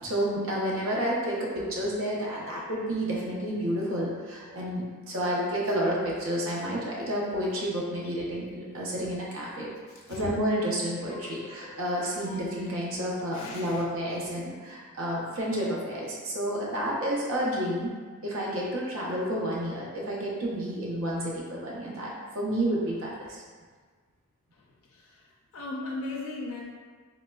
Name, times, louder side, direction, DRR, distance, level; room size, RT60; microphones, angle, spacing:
voice 1, 0.0-9.7 10.1-17.9 18.2-23.4, equal, 65° right, -4 dB, 0.6 m, -30 dB
voice 2, 8.7-9.0 10.1-10.3 11.0-11.9 12.2-12.4 13.3-14.2 24.9-25.0 25.5-26.7, left 2 dB, 65° left, -2 dB, 0.4 m, -39 dB
4.0 x 2.0 x 2.2 m, 1.5 s
head